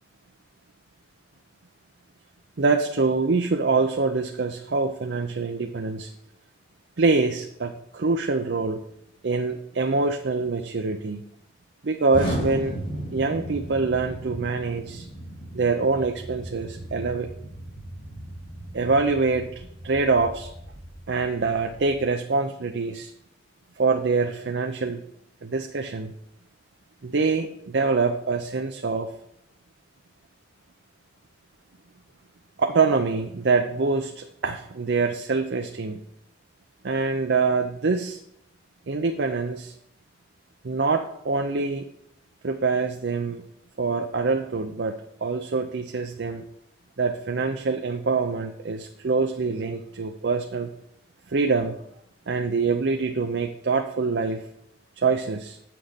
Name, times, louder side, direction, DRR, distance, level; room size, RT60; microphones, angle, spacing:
voice 1, 2.6-6.1 7.0-8.8 9.2-11.2 11.8-12.8 13.1-15.1 15.5-17.3 18.7-20.5 21.1-23.1 23.8-25.0 25.4-26.1 27.0-29.1 32.6-36.0 36.8-38.2 38.9-39.7 40.6-41.9 42.4-43.4 43.8-44.9 45.2-46.4 47.0-50.7 51.3-51.7 52.3-54.4 55.0-55.6, right 4 dB, 70° right, 5 dB, 0.6 m, -25 dB
Explosion, 12.1-22.0, right 1 dB, 45° left, 2.4 m, -36 dB
8.5 x 6.0 x 5.1 m, 0.76 s
head